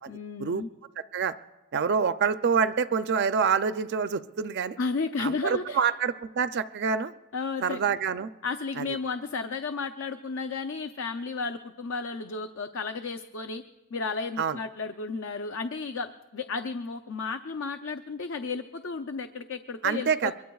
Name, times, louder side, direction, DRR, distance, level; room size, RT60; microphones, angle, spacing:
voice 1, 0.1-0.7 4.8-5.9 7.3-7.8 8.4-13.6 13.9-20.3, left 4 dB, 60° left, 9 dB, 0.6 m, -33 dB
voice 2, 1.7-4.8 5.2-7.1 7.6-8.3 8.8-8.9 14.4-14.6 19.8-20.3, right 6 dB, 50° right, 11 dB, 0.4 m, -26 dB
24.5 x 22.5 x 2.3 m, 1.1 s
head